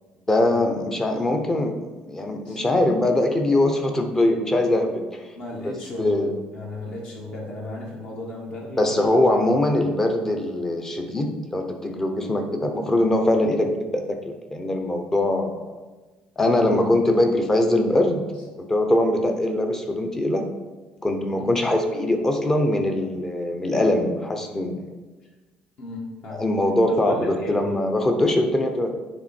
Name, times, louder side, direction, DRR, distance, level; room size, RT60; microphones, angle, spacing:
voice 1, 0.3-5.2 5.6-5.7 6.0-6.3 8.8-15.6 16.4-18.2 18.6-20.5 21.0-24.9 26.3-28.9, left 1 dB, 15° left, 5 dB, 0.8 m, -22 dB
voice 2, 5.4-9.5 16.5-16.9 21.4-21.6 25.8-26.5 26.9-27.7, left 1 dB, 50° left, -3 dB, 1.6 m, -35 dB
9.2 x 3.6 x 4.3 m, 1.2 s
cardioid pair, 145°, 3 cm